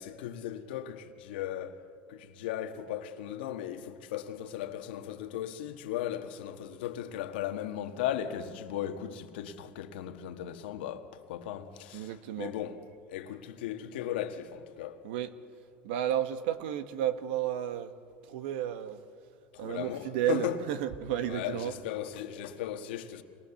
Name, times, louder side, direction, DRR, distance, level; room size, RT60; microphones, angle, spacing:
voice 1, 0.0-15.0 19.5-20.6 21.2-23.2, left 11 dB, 85° left, 1.5 m, -37 dB
voice 2, 11.9-12.5 15.0-15.3 15.8-17.9 18.3-19.0 19.6-21.7, right 11 dB, 80° right, 1.4 m, -32 dB
27.0 x 20.5 x 7.1 m
supercardioid pair, 110°, 5 cm